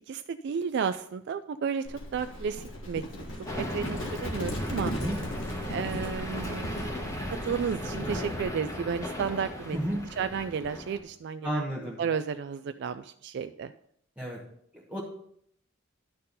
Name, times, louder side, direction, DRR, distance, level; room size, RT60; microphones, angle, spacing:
voice 1, 0.1-3.3 3.6-4.9 5.7-6.7 7.4-11.6 12.0-13.7, right 6 dB, 60° right, 10 dB, 0.3 m, -32 dB
Livestock farm animals working animals, 1.8-8.5, left 1 dB, 70° left, 1.6 m, -37 dB
sound 1, 3.5-11.0, left 1 dB, 15° left, 1.4 m, -37 dB
voice 2, 11.4-12.0 14.2-14.4 14.7-15.0, equal, 5° right, -5 dB, 1.2 m, -32 dB
11.5 x 4.4 x 5.4 m, 0.69 s
head